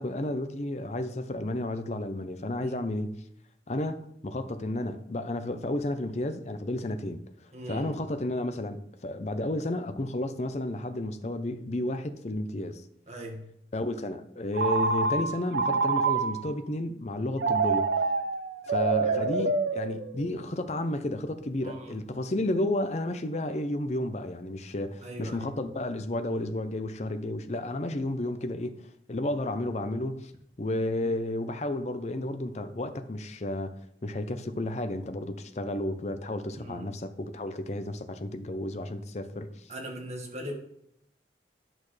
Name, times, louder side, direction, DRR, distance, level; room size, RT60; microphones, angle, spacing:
voice 1, 0.0-3.2 3.7-7.2 7.7-12.8 13.7-17.9 18.7-30.3 30.6-33.7 34.0-39.5, left 1 dB, 40° left, 0.6 m, -32 dB
voice 2, 7.5-7.9 13.1-13.4 19.0-19.2 21.6-21.9 25.0-25.5 36.6-36.9 39.7-40.5, equal, 40° right, 1.6 m, -39 dB
Telephone, 14.5-16.5 17.4-20.4, right 4 dB, 75° right, 0.6 m, -27 dB
10.5 x 6.3 x 3.2 m
head